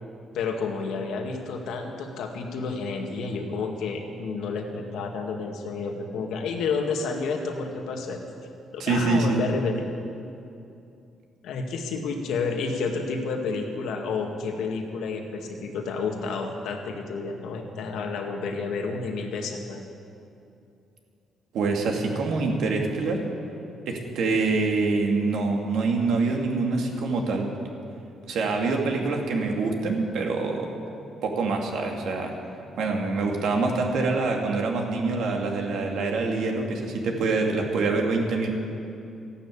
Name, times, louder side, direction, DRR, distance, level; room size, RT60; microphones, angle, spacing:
voice 1, 0.3-8.2 8.7-9.8 11.4-19.8, left 4 dB, 80° left, 3 dB, 2.0 m, -30 dB
voice 2, 8.8-9.4 21.5-23.3 23.9-27.5 28.3-30.7 31.2-32.3 32.8-38.5, right 3 dB, 75° right, 1 dB, 2.5 m, -25 dB
14.5 x 11.5 x 8.6 m, 2.6 s
cardioid pair, 90°, 0 cm